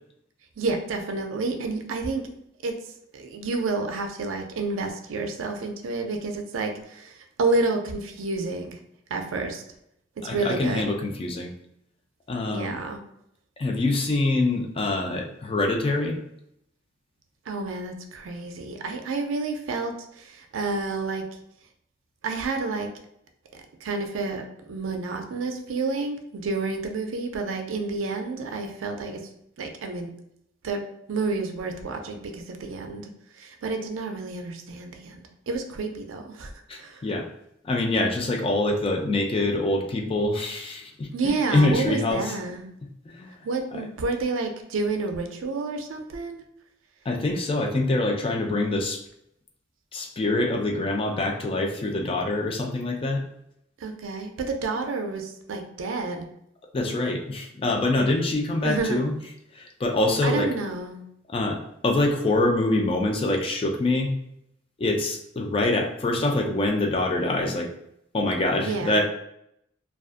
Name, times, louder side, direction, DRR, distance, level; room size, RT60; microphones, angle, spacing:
voice 1, 0.6-2.3 2.6-2.7 3.1-8.8 9.1-9.6 10.2-10.9 12.5-13.0 17.5-21.2 22.2-22.9 23.8-29.2 29.6-30.1 30.6-30.8 31.1-33.1 33.3-36.5 36.8-37.1 41.1-42.7 43.4-46.4 53.8-56.2 58.6-59.0 60.2-61.0 68.6-69.0, right 3 dB, 80° right, 5 dB, 0.4 m, -29 dB
voice 2, 10.2-11.5 12.3-12.8 13.6-16.2 36.7-37.3 37.6-42.3 43.1-43.3 43.7-43.8 47.1-49.0 49.9-53.2 56.7-59.1 59.6-60.5 61.3-64.1 64.8-67.7 68.1-69.0, left 2 dB, 30° left, 2 dB, 0.3 m, -25 dB
2.4 x 2.3 x 2.4 m, 0.75 s
head